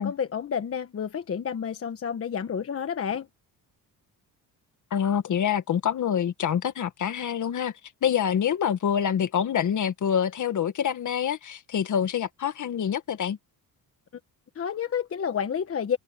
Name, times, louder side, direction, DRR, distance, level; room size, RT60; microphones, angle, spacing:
voice 1, 0.0-3.3 14.5-16.0, left 7 dB, 40° left, 1.2 m, -30 dB
voice 2, 4.9-7.7 8.0-13.4, left 8 dB, 55° left, 1.9 m, -26 dB
cardioid pair, 140°, 37 cm